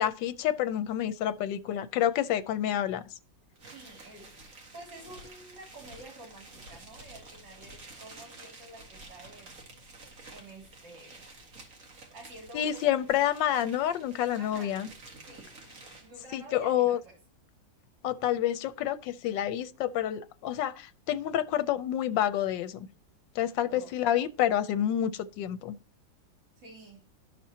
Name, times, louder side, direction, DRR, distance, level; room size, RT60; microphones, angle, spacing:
voice 1, 0.0-3.0 12.5-14.9 16.3-17.0 18.0-22.9 23.3-25.8, left 11 dB, 80° left, 1.3 m, -28 dB
sound 1, 3.6-16.2, right 2 dB, 50° right, 2.1 m, -50 dB
voice 2, 3.7-4.3 4.7-9.6 10.3-11.2 12.1-13.0 14.4-14.9 15.2-17.2 23.7-24.0 26.6-27.1, right 2 dB, 70° right, 3.8 m, -50 dB
12.0 x 6.0 x 2.8 m
omnidirectional pair, 2.0 m